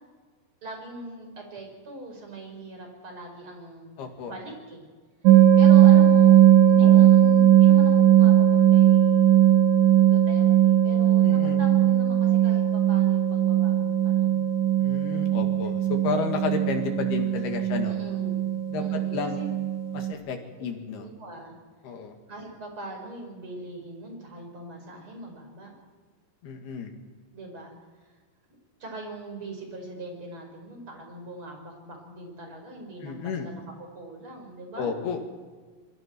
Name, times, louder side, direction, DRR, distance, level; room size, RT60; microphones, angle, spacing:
voice 1, 0.6-4.0 4.2-4.8 5.3-9.3 10.1-14.7 17.8-18.4 18.8-19.5 21.0-21.6 22.3-25.7 27.3-27.8 28.8-34.9, right 1 dB, 30° right, 2 dB, 5.5 m, -41 dB
voice 2, 4.0-4.3 6.8-7.1 11.2-11.6 14.8-17.9 18.7-19.4 19.9-21.1 21.8-22.2 26.4-26.9 33.0-33.5 34.8-35.2, left 5 dB, 70° left, 4 dB, 4.0 m, -32 dB
sound 1, 5.2-20.1, right 11 dB, 70° right, 2.1 m, -18 dB
26.5 x 22.0 x 4.5 m, 1.5 s
omnidirectional pair, 4.8 m